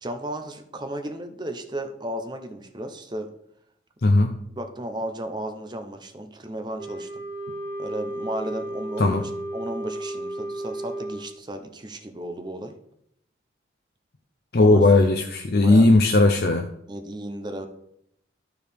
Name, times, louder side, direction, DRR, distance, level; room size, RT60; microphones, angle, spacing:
voice 1, 0.0-3.3 4.6-7.2 7.8-12.7 14.6-14.9 15.5-15.9 16.9-17.7, right 1 dB, 25° right, 6 dB, 0.7 m, -34 dB
voice 2, 4.0-4.3 9.0-9.2 14.5-16.7, left 2 dB, 60° left, 5 dB, 0.6 m, -17 dB
Wind instrument woodwind instrument, 6.8-11.2, right 1 dB, 55° right, 2.3 m, -33 dB
13.0 x 4.6 x 3.4 m, 0.73 s
head